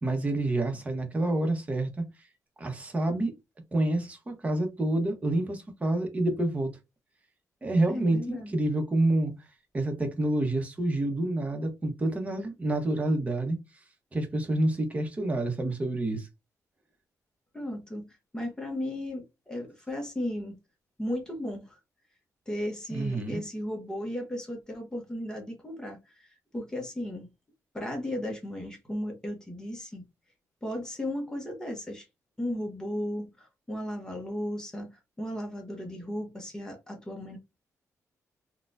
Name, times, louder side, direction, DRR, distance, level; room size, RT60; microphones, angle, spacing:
voice 1, 0.0-2.0 2.6-3.3 3.7-6.7 7.6-9.3 9.7-13.6 14.1-16.3 22.9-23.5, right 2 dB, 20° right, 0.9 m, -28 dB
voice 2, 7.9-8.6 17.5-20.6 21.0-21.8 22.5-27.3 27.7-30.1 30.6-32.1 32.4-34.9 35.2-37.4, left 1 dB, 10° left, 0.9 m, -35 dB
4.1 x 2.3 x 2.5 m
wide cardioid pair, 140°, 6 cm